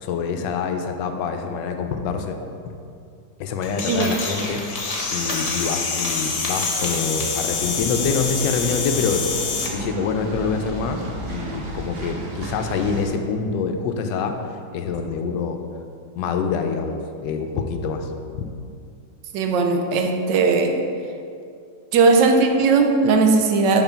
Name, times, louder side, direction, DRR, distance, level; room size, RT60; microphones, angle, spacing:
voice 1, 0.0-2.4 2.6-2.7 3.4-4.6 5.1-9.3 9.7-14.4 14.7-15.6 16.2-18.5, left 5 dB, 90° left, 6 dB, 1.3 m, -26 dB
sound 1, 3.6-9.7, left 5 dB, 65° left, 1.2 m, -27 dB
Coin (dropping), 3.9-7.8, left 1 dB, 30° left, 0.7 m, -33 dB
sound 2, 7.4-13.0, right 1 dB, 45° right, 0.8 m, -33 dB
voice 2, 19.3-20.8 21.9-23.8, right 4 dB, 80° right, 4 dB, 1.3 m, -18 dB
6.0 x 3.7 x 5.5 m, 2.4 s
omnidirectional pair, 1.9 m